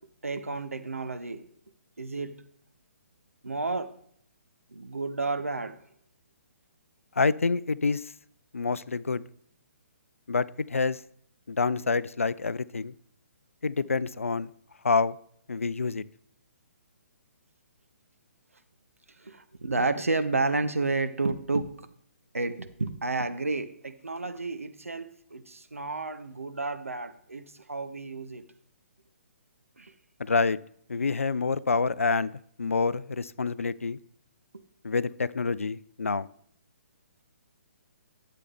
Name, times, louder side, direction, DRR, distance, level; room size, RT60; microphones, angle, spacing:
voice 1, 0.2-1.4 2.0-2.4 3.4-3.9 4.7-5.8 19.2-21.9 22.3-28.4 29.8-29.9, right 3 dB, 75° right, 9 dB, 0.9 m, -31 dB
voice 2, 7.2-8.1 8.5-9.2 10.3-11.0 11.5-12.9 13.6-14.5 14.8-15.2 15.5-16.0 30.2-30.6 30.9-32.3 32.6-34.0 34.8-36.3, left 4 dB, 70° left, 18 dB, 0.4 m, -27 dB
11.5 x 7.7 x 3.5 m, 0.66 s
figure-of-eight pair, 130°, 8 cm